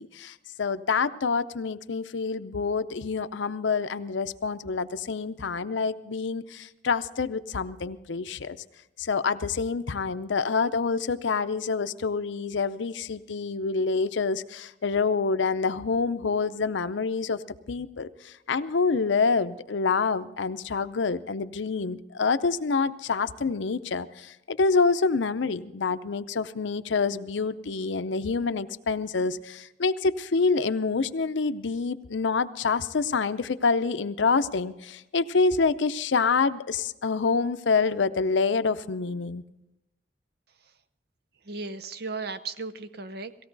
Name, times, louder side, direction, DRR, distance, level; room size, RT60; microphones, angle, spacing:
voice 1, 0.0-8.6 9.0-17.4 17.7-39.4, left 4 dB, 85° left, 12 dB, 0.6 m, -27 dB
voice 2, 41.5-43.5, right 4 dB, 60° right, 10 dB, 0.7 m, -36 dB
18.0 x 16.0 x 4.0 m, 0.91 s
head